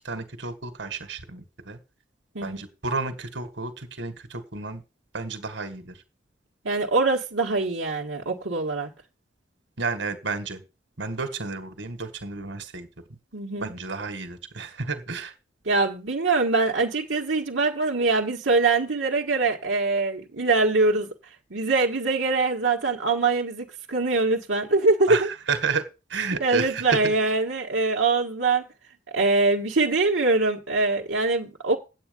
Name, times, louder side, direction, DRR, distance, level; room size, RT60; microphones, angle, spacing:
voice 1, 0.0-1.8 2.4-4.8 5.1-6.0 9.8-10.6 11.0-12.9 13.6-15.3 25.1-27.1, right 4 dB, 70° right, 1.8 m, -31 dB
voice 2, 6.6-8.9 13.3-13.7 15.6-21.1 21.5-25.3 26.4-28.7 29.1-31.8, right 3 dB, 85° right, 1.5 m, -23 dB
8.9 x 8.5 x 5.3 m
head